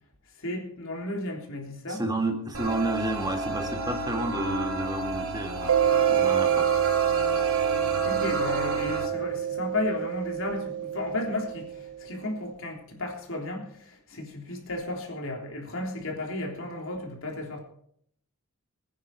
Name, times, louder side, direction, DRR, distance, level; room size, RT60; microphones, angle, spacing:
voice 1, 0.4-2.0 8.0-17.6, left 2 dB, 65° left, 1 dB, 3.5 m, -33 dB
voice 2, 1.9-5.8 6.1-6.7, right 2 dB, 20° right, 4 dB, 1.8 m, -30 dB
sound 1, 2.5-9.1, right 2 dB, 65° right, 2.7 m, -31 dB
Mallet percussion, 5.7-12.1, right 10 dB, 90° right, 0.5 m, -27 dB
21.0 x 9.6 x 4.8 m, 0.67 s
head